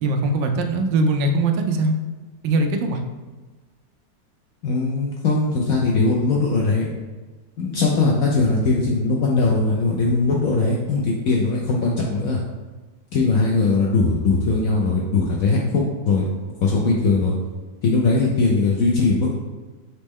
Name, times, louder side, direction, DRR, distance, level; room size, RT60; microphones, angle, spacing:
voice 1, 0.0-2.0 2.4-3.0, right 2 dB, 90° right, 5 dB, 1.3 m, -21 dB
voice 2, 4.6-6.9 7.6-12.4 13.1-16.3 16.6-17.4 17.8-19.3, left 3 dB, 75° left, -2 dB, 0.8 m, -20 dB
4.2 x 3.1 x 3.5 m, 1.2 s
omnidirectional pair, 1.9 m